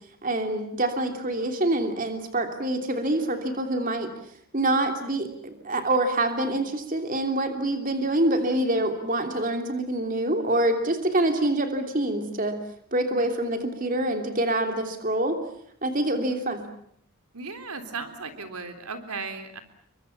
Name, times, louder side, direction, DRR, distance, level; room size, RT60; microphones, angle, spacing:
voice 1, 0.2-4.1 4.5-12.6 12.9-15.4 15.8-16.6, right 1 dB, 35° right, 5 dB, 3.0 m, -26 dB
voice 2, 17.3-19.6, right 4 dB, 90° right, 8 dB, 3.7 m, -36 dB
29.5 x 24.0 x 7.2 m, 0.66 s
head